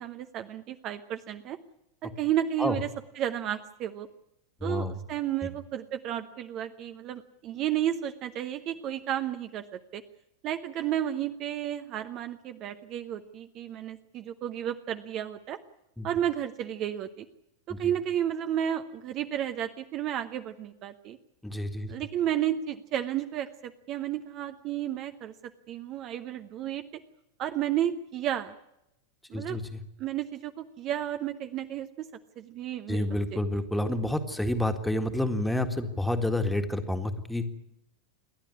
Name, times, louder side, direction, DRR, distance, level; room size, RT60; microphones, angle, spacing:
voice 1, 0.0-1.6 2.0-2.9 3.1-4.1 4.6-10.0 10.4-15.6 16.0-17.3 17.7-21.2 21.9-25.3 25.7-26.8 27.4-28.5 29.3-29.6 30.0-32.1 32.4-33.4, right 11 dB, 35° right, 9 dB, 0.9 m, -32 dB
voice 2, 4.6-5.0 16.0-16.1 17.7-17.8 21.4-21.9 29.3-29.8 32.9-37.4, left 1 dB, 5° left, 6 dB, 1.9 m, -29 dB
28.0 x 12.0 x 9.7 m, 0.85 s
figure-of-eight pair, 90°, 0 cm